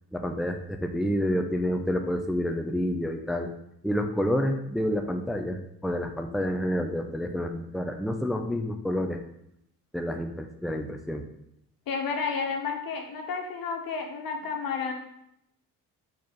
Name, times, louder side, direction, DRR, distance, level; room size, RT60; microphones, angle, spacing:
voice 1, 0.1-3.5 3.8-9.2 9.9-11.2, equal, ahead, 4 dB, 0.7 m, -29 dB
voice 2, 11.9-14.9, left 5 dB, 60° left, 3 dB, 1.6 m, -31 dB
4.7 x 4.7 x 5.9 m, 0.76 s
hypercardioid pair, 50°, 40 cm